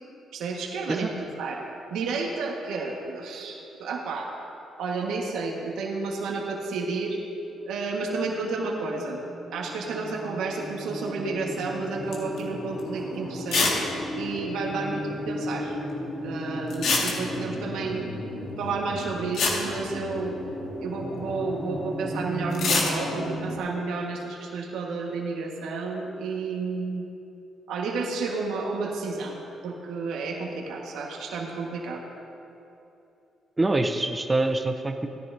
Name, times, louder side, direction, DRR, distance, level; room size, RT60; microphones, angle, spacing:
voice 1, 0.3-1.6 1.9-4.3 4.8-7.2 7.7-9.2 9.5-13.7 14.1-15.8 16.2-18.0 18.6-20.4 20.8-27.1 27.7-29.4 29.6-32.0, right 4 dB, 85° right, -1 dB, 1.5 m, -31 dB
sound 1, 7.2-23.6, left 1 dB, 45° left, 2.6 m, -36 dB
sound 2, 12.1-12.4 12.8-12.9 13.5-13.8 14.1-14.2 14.4-14.5 16.7-17.5 18.9-19.0 19.3-20.6 22.5-23.0, left 3 dB, 75° left, 1.9 m, -24 dB
voice 2, 33.6-35.1, right 2 dB, 20° right, 5 dB, 0.7 m, -25 dB
17.0 x 10.5 x 2.7 m, 2.9 s
cardioid pair, 90°, 0 cm